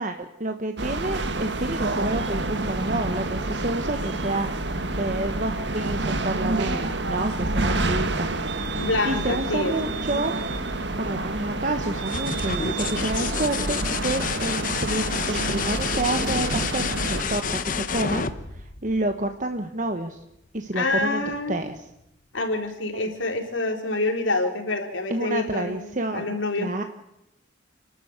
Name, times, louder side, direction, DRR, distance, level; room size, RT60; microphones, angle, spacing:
voice 1, 0.0-4.5 5.0-8.3 9.0-10.3 11.0-20.2 20.5-21.9 22.9-23.1 25.1-26.3 26.6-26.8, right 2 dB, 40° right, 6 dB, 1.2 m, -29 dB
sound 1, 0.8-17.2, right 2 dB, 60° right, 1.6 m, -28 dB
voice 2, 8.7-9.7 20.7-21.6 22.3-25.8 26.1-26.7, left 2 dB, 85° left, 3 dB, 3.9 m, -26 dB
sound 2, 11.9-19.5 21.3-21.9, left 6 dB, 45° left, 1.1 m, -30 dB
29.5 x 12.5 x 8.3 m, 0.86 s
head